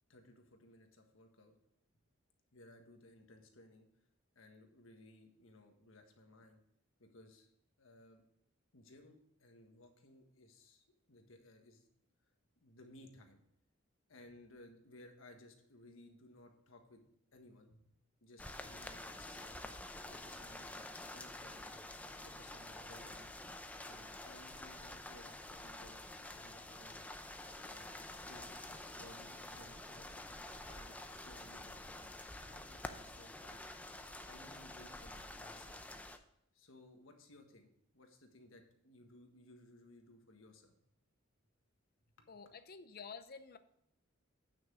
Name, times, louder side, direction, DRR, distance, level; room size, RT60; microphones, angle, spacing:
voice 1, 0.1-1.5 2.5-3.9 4.3-6.6 7.0-7.5 7.8-8.2 8.7-11.9 12.6-13.4 14.1-17.0 17.3-17.9 18.2-19.8 20.1-21.7 22.2-23.4 23.8-27.0 27.6-30.2 30.5-33.6 34.2-35.8 36.5-40.8 42.2-42.3, left 1 dB, 70° left, 4 dB, 1.5 m, -60 dB
sound 1, 18.4-36.2, left 1 dB, 5° left, 0.5 m, -49 dB
voice 2, 42.3-43.6, left 5 dB, 45° left, 11 dB, 0.6 m, -50 dB
9.4 x 6.0 x 4.9 m, 0.75 s
head